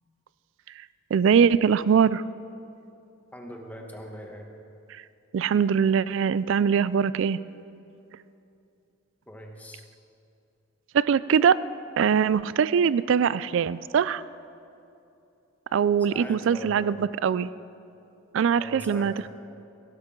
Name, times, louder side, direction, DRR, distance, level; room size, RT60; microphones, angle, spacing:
voice 1, 1.1-2.2 5.3-7.4 10.9-11.6 12.0-14.2 15.7-17.5 18.3-19.3, right 7 dB, 65° right, 17 dB, 0.3 m, -22 dB
voice 2, 3.3-4.5 9.3-9.9 16.0-16.8 18.6-19.3, equal, 10° left, 1 dB, 1.2 m, -41 dB
16.5 x 11.5 x 3.8 m, 2.7 s
head